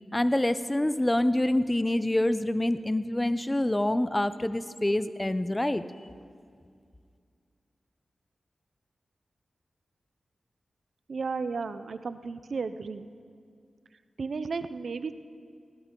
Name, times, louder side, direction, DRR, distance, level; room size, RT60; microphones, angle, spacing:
voice 1, 0.1-5.8, left 1 dB, 20° left, 13 dB, 0.6 m, -26 dB
voice 2, 11.1-13.1 14.2-15.1, right 4 dB, 70° right, 12 dB, 0.5 m, -33 dB
19.5 x 16.5 x 3.8 m, 2.2 s
cardioid pair, 50°, 0 cm